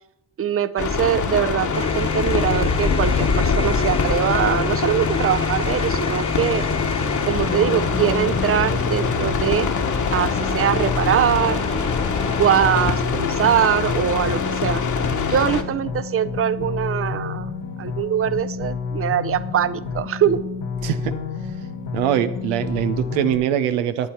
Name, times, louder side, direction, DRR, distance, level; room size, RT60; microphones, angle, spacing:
voice 1, 0.4-6.6 7.3-9.7 10.1-11.6 12.4-14.8 15.3-17.5 17.8-20.4, right 9 dB, 30° right, 15 dB, 0.6 m, -22 dB
sound 1, 0.8-15.6, left 5 dB, 40° left, 1.2 m, -24 dB
sound 2, 1.7-12.9, left 3 dB, 15° left, 0.6 m, -29 dB
sound 3, 7.4-23.4, left 5 dB, 75° left, 2.1 m, -30 dB
voice 2, 20.8-21.1 21.9-24.1, right 10 dB, 90° right, 11 dB, 0.6 m, -22 dB
11.0 x 8.4 x 4.3 m, 0.88 s
hypercardioid pair, 50°, 45 cm